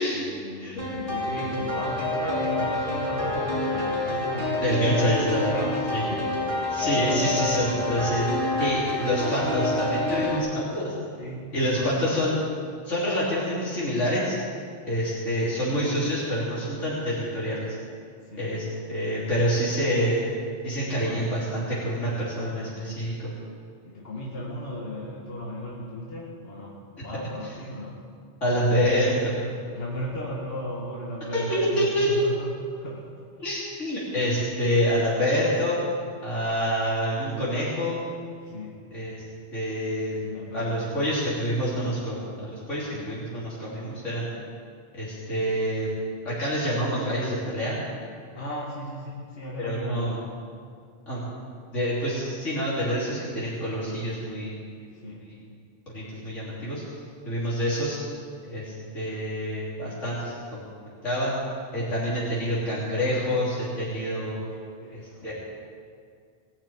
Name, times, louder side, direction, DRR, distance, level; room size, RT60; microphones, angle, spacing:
voice 1, 0.1-6.3 11.2-12.0 15.2-15.4 18.2-19.0 20.9-21.3 22.5-22.8 23.8-28.0 29.7-33.4 38.4-38.8 40.2-41.0 42.9-43.2 48.3-50.3 54.9-55.3 64.5-65.3, equal, 55° left, -4 dB, 2.2 m, -36 dB
sound 1, 0.8-10.4, left 2 dB, 45° right, 3.6 m, -27 dB
voice 2, 4.6-5.4 5.9-6.0 6.7-8.3 8.6-10.9 11.5-12.4 12.9-14.4 14.9-17.8 18.4-20.2 20.6-23.3 28.4-29.3 31.3-32.1 33.4-35.8 36.2-38.0 38.9-39.1 39.5-40.2 40.5-44.3 44.9-45.9 46.2-47.8 49.6-50.1 51.1-51.2 51.7-54.6 55.2-55.4 55.9-56.8 57.3-58.0 58.5-60.7 61.0-61.3 61.7-64.4 64.9-65.3, equal, 85° left, -8 dB, 3.7 m, -27 dB
19.0 x 7.2 x 8.8 m, 2.2 s
omnidirectional pair, 1.2 m